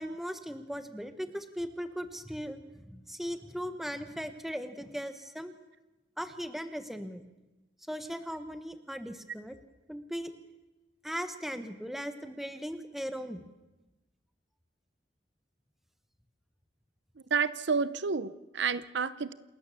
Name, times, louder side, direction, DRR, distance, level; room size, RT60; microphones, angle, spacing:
voice 1, 0.0-5.5 6.2-7.2 7.9-9.6 9.9-10.3 11.0-13.4, equal, ahead, 9 dB, 1.2 m, -38 dB
voice 2, 17.3-19.3, right 5 dB, 70° right, 16 dB, 0.7 m, -30 dB
28.0 x 13.5 x 7.1 m, 1.1 s
head